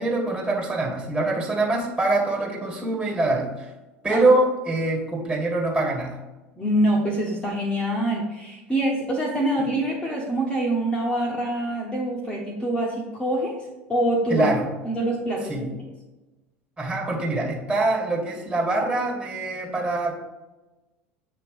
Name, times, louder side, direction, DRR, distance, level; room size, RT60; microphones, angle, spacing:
voice 1, 0.0-3.7 4.0-6.2 14.3-14.7 15.5-15.8 16.8-20.1, right 2 dB, 20° right, 0 dB, 2.0 m, -24 dB
voice 2, 6.6-14.5 14.8-15.7, right 1 dB, 15° left, -2 dB, 1.0 m, -25 dB
7.6 x 3.0 x 5.2 m, 1.1 s
figure-of-eight pair, 75°, 7 cm